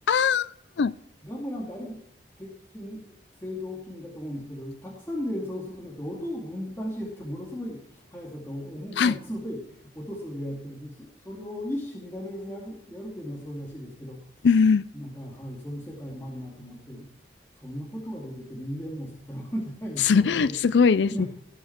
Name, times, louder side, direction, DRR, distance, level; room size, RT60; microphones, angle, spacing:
voice 1, 0.1-0.5 0.8-0.9 9.0-9.1 14.4-14.9 20.0-21.3, left 5 dB, 75° left, 15 dB, 0.4 m, -20 dB
voice 2, 1.2-2.0 2.4-3.0 3.3-14.4 14.9-17.1 17.6-20.8 21.1-21.3, equal, 15° left, -4 dB, 2.5 m, -36 dB
18.0 x 6.4 x 5.9 m, 0.70 s
head